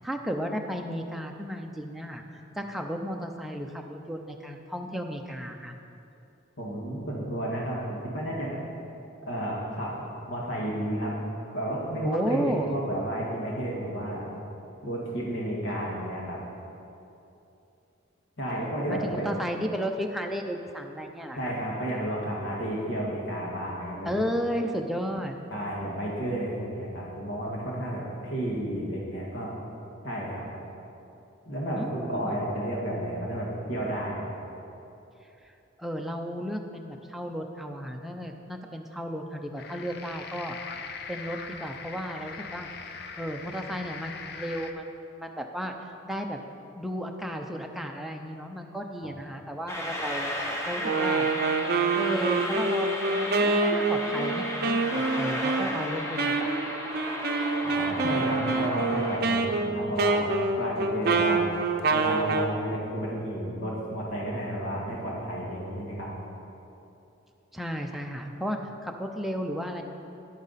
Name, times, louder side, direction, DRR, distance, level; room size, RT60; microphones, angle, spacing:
voice 1, 0.0-5.8 12.0-12.7 18.9-21.5 24.0-25.4 31.7-32.4 35.8-40.6 41.1-42.7 43.2-46.4 46.8-50.3 50.6-51.3 51.9-54.9 55.1-56.5 67.5-69.8, equal, ahead, 2 dB, 0.5 m, -34 dB
voice 2, 6.6-8.6 9.2-9.9 10.3-11.1 11.5-14.2 14.8-16.4 18.4-19.3 21.4-24.1 25.5-29.6 30.0-30.4 31.5-34.2 49.0-49.1 57.6-60.3 60.6-61.5 61.9-66.1, right 1 dB, 70° left, -4 dB, 1.8 m, -32 dB
sound 1, 39.6-44.7, left 5 dB, 55° left, 0.6 m, -41 dB
sound 2, 49.7-59.2, equal, 15° left, 0.9 m, -34 dB
Wind instrument woodwind instrument, 50.8-62.6, right 3 dB, 50° right, 0.5 m, -27 dB
10.5 x 8.8 x 4.1 m, 2.8 s
head